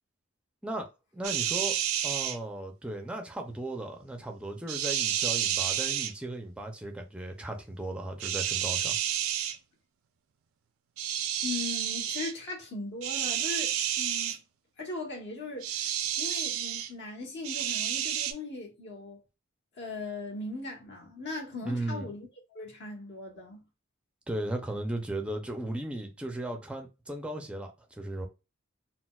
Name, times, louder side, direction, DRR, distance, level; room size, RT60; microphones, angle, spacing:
voice 1, 1.1-9.0 21.6-22.1 24.3-28.3, right 1 dB, 5° right, 0.4 m, -36 dB
sound 1, 1.2-2.4 4.7-6.1 8.2-9.6 11.0-12.3 13.0-14.4 15.6-16.9 17.4-18.3, right 10 dB, 85° right, 0.4 m, -30 dB
voice 2, 11.4-14.4 14.8-19.2 19.8-23.6, left 3 dB, 60° left, 0.9 m, -39 dB
4.1 x 2.0 x 2.3 m
head